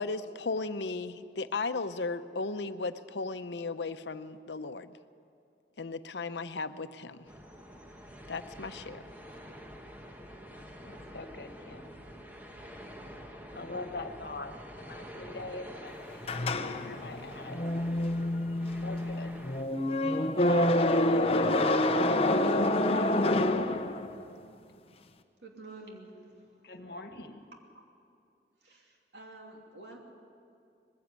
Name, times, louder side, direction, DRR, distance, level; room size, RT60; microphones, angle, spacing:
voice 1, 0.0-4.9 5.8-7.2 8.3-9.0, left 3 dB, 85° left, 11 dB, 0.7 m, -35 dB
sound 1, 7.3-19.6, equal, 10° right, 1.2 m, -47 dB
voice 2, 10.8-11.9 13.5-17.6 18.8-19.4 20.1-23.1 26.6-27.4, left 2 dB, 65° left, 7 dB, 1.4 m, -44 dB
sound 2, 16.2-24.3, left 1 dB, 35° left, 0.7 m, -27 dB
voice 3, 25.4-26.5 28.6-30.0, right 2 dB, 85° right, 1 dB, 2.9 m, -49 dB
20.5 x 15.5 x 8.3 m, 2.5 s
head